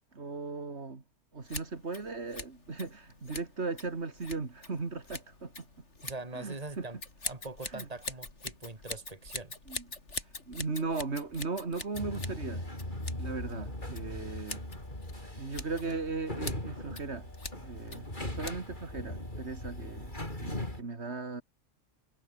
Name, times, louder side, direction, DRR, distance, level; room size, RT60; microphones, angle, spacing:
voice 1, 0.1-1.0 1.3-5.5 6.3-6.9 7.7-7.9 9.7-9.8 10.1-12.6 13.2-14.6 15.4-17.3 17.6-20.1 20.4-21.4, right 4 dB, 70° right, 2.8 m, -37 dB
Scissors, 1.4-18.9, left 3 dB, 80° left, 4.2 m, -45 dB
voice 2, 6.0-7.0 7.2-9.5, right 2 dB, 35° right, 2.9 m, -42 dB
sound 1, 11.9-20.8, left 1 dB, 45° left, 7.5 m, -39 dB
omnidirectional pair, 1.2 m